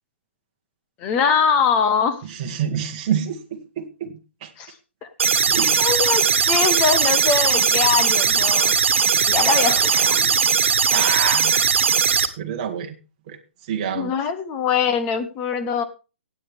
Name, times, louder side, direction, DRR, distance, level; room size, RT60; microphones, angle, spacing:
voice 1, 1.0-2.2 4.6-4.7 5.2-5.3 5.8-8.7 9.3-9.8 10.0-10.2 13.9-15.8, left 6 dB, 15° left, 11 dB, 0.8 m, -22 dB
voice 2, 2.2-4.1 4.4-4.5 5.5-5.9 9.2-10.3 10.9-11.7 12.0-13.0 13.3-13.4 13.7-14.1, right 8 dB, 30° right, 3 dB, 1.3 m, -28 dB
sound 1, 5.2-12.3, right 6 dB, 80° right, 1.4 m, -19 dB
17.5 x 8.6 x 3.5 m, 0.32 s
hypercardioid pair, 175°, 6 cm